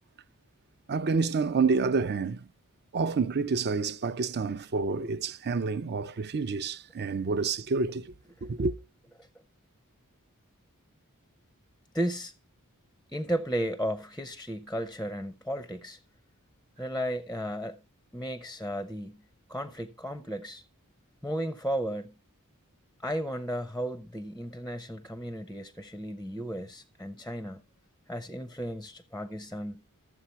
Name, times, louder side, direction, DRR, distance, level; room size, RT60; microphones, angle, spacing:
voice 1, 0.9-2.5 2.9-8.1 8.4-8.7, right 4 dB, 50° right, 0.5 m, -28 dB
voice 2, 11.9-12.3 13.1-16.0 16.8-17.8 18.1-19.2 19.5-20.6 21.2-22.1 23.0-27.6 28.1-29.8, equal, 5° left, 0.6 m, -34 dB
13.0 x 7.5 x 4.3 m
head